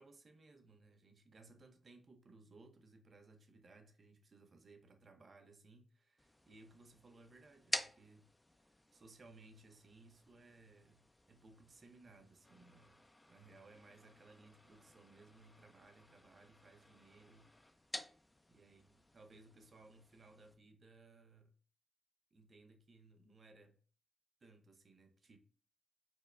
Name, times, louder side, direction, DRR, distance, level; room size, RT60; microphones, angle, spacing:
voice 1, 0.0-8.3 8.6-13.0 13.3-17.5 18.5-21.5 22.3-23.8 24.4-25.4, right 3 dB, 55° right, 0.5 m, -62 dB
sound 1, 6.2-20.5, left 1 dB, 15° left, 0.4 m, -51 dB
4.4 x 2.1 x 2.4 m
supercardioid pair, 45°, 0 cm